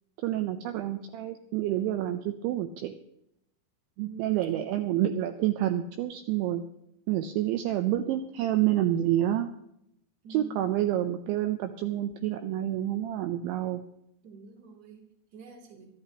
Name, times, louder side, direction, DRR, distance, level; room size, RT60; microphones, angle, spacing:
voice 1, 0.2-2.9 4.0-6.6 7.1-9.5 10.3-13.8, right 12 dB, 80° right, 7 dB, 2.8 m, -28 dB
voice 2, 4.0-4.7 10.2-10.8 14.2-15.8, right 6 dB, 30° right, 0 dB, 2.1 m, -46 dB
25.0 x 13.0 x 3.0 m, 0.77 s
omnidirectional pair, 5.9 m